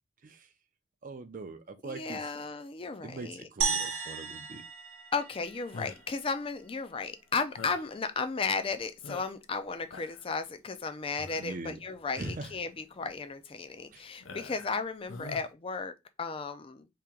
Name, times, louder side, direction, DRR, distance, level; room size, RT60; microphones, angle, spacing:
voice 1, 1.0-2.2 3.0-4.6 11.4-11.8 12.2-12.5 13.9-14.1, right 3 dB, 40° right, 0.5 m, -42 dB
voice 2, 1.8-3.5 5.1-16.9, left 4 dB, 25° left, 0.4 m, -34 dB
sound 1, 3.6-6.0, right 5 dB, 85° right, 0.7 m, -34 dB
sound 2, 5.7-6.2 7.5-7.9 8.5-8.6 9.0-9.5 9.8-10.3 11.2-11.5 12.1-12.5 13.0-13.2 14.2-14.8 15.1-15.5, left 3 dB, 85° left, 0.6 m, -45 dB
2.9 x 2.9 x 3.5 m
head